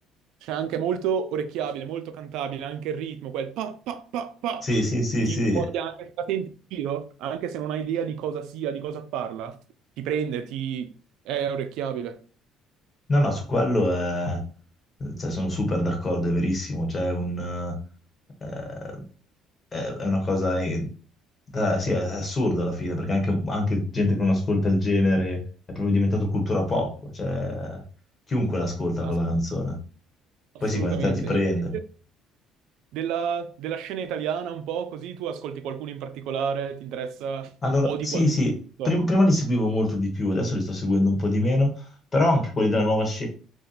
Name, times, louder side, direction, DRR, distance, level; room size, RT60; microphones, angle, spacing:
voice 1, 0.4-4.7 5.2-9.6 10.0-10.9 11.3-12.2 29.0-29.2 30.5-31.4 32.9-37.5 37.8-38.3 38.8-38.9, right 8 dB, 75° right, 0.3 m, -30 dB
voice 2, 4.6-5.6 13.1-14.4 15.0-17.8 18.4-19.0 19.7-20.9 21.5-25.4 25.7-27.8 28.3-29.8 30.6-31.7 37.6-38.5 38.8-41.9 42.1-43.3, left 1 dB, 30° left, 1.1 m, -24 dB
2.7 x 2.1 x 3.9 m
cardioid pair, 115°, 0 cm